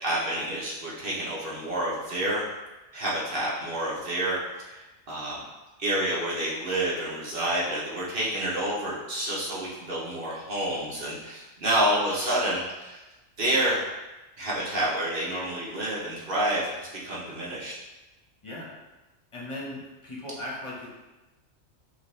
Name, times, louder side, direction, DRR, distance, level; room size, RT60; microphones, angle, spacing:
voice 1, 0.0-2.4 2.9-4.4 4.7-5.4 5.8-13.0 13.4-13.8 14.4-17.7, right 1 dB, 45° right, -6 dB, 1.2 m, -28 dB
voice 2, 19.3-20.9, left 1 dB, 25° left, -6 dB, 1.1 m, -37 dB
5.5 x 2.5 x 3.3 m, 1.1 s
omnidirectional pair, 1.3 m